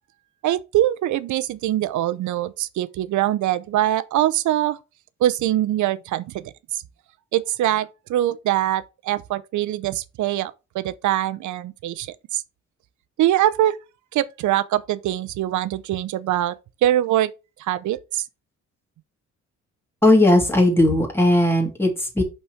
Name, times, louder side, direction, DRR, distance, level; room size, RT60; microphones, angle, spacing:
voice 1, 0.4-4.8 5.2-6.8 7.3-12.4 13.2-13.8 14.1-17.3 17.6-18.2, right 13 dB, 75° right, 0.7 m, -23 dB
voice 2, 20.0-22.2, left 1 dB, 10° left, 2.8 m, -17 dB
5.5 x 4.3 x 4.7 m
cardioid pair, 90°, 30 cm